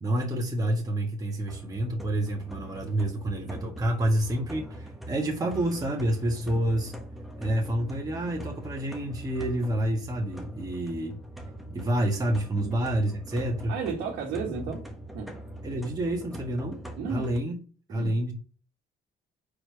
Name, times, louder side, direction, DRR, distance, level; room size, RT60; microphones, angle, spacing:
voice 1, 0.0-7.0 7.4-11.2 11.7-13.7 15.6-16.8 17.1-17.6 17.9-18.3, right 1 dB, 20° right, 1.7 m, -28 dB
sound 1, 1.5-17.4, right 1 dB, ahead, 1.4 m, -42 dB
voice 2, 13.7-14.8 15.1-15.4 17.0-17.3 17.9-18.2, right 5 dB, 85° right, 1.6 m, -33 dB
5.0 x 4.4 x 5.7 m
cardioid pair, 110°, 17 cm